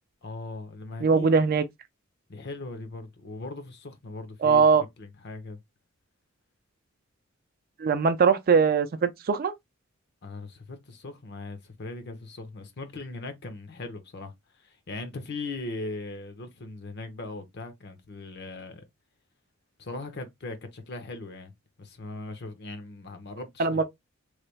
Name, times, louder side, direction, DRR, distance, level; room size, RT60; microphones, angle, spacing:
voice 1, 0.2-1.3 2.3-5.6 10.2-18.8 19.8-21.5 21.8-23.8, left 2 dB, 55° left, 0.7 m, -39 dB
voice 2, 1.0-1.6 4.4-4.8 7.8-9.5 23.6-23.8, right 5 dB, 45° right, 0.4 m, -21 dB
3.2 x 2.3 x 3.1 m
head